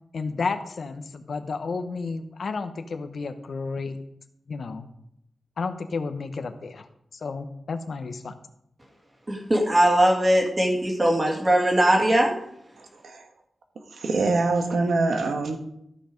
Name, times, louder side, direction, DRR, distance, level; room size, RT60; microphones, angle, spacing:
voice 1, 0.1-4.0 4.5-4.9 5.6-6.9 7.2-8.3, left 4 dB, 60° left, 8 dB, 0.9 m, -31 dB
voice 2, 9.3-12.3, right 1 dB, 20° right, 0 dB, 2.3 m, -20 dB
voice 3, 12.8-13.3 13.7-15.6, right 3 dB, 85° right, 5 dB, 1.5 m, -25 dB
13.5 x 7.0 x 5.2 m, 0.76 s
wide cardioid pair, 175°, 0 cm